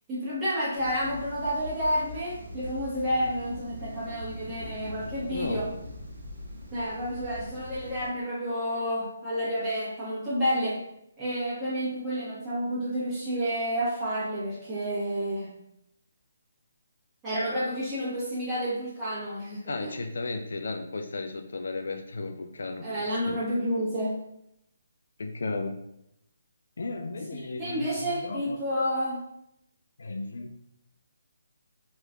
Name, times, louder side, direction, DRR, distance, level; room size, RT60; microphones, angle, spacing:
voice 1, 0.1-5.7 6.7-10.8 11.2-15.5 17.2-19.9 22.8-24.1 27.3-29.2, equal, 15° right, -9 dB, 1.4 m, -30 dB
sound 1, 0.7-8.1, left 1 dB, 75° right, 0.9 m, -42 dB
voice 2, 5.3-5.6 19.7-23.4 25.2-25.8 26.8-28.6 30.0-30.6, left 3 dB, 70° left, 6 dB, 0.3 m, -34 dB
3.0 x 2.9 x 2.4 m, 0.78 s
figure-of-eight pair, 150°, 0 cm